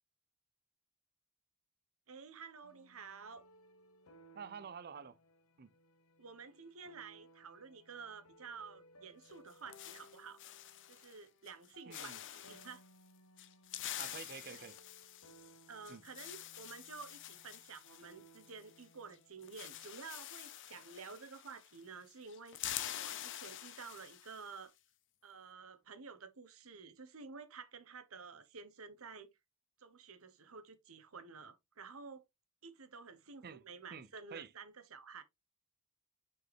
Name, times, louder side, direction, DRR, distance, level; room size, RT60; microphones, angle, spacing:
voice 1, 2.1-3.4 6.2-10.4 10.9-12.8 14.5-14.6 15.7-24.7 25.2-29.3 29.8-32.2 32.6-35.2, right 5 dB, 70° right, 1.1 m, -51 dB
sound 1, 2.6-19.9, right 1 dB, 85° left, 1.0 m, -64 dB
voice 2, 4.3-5.2 5.6-5.7 11.9-12.2 14.0-14.8 15.9-16.0 33.4-33.6 33.9-34.5, right 6 dB, 45° right, 0.5 m, -49 dB
sound 2, 9.2-11.2 11.5-11.7 11.9-12.8 13.4-18.8 19.1-19.2 19.4-21.8 22.1-24.5, left 12 dB, 60° left, 0.7 m, -47 dB
6.4 x 4.6 x 3.4 m
head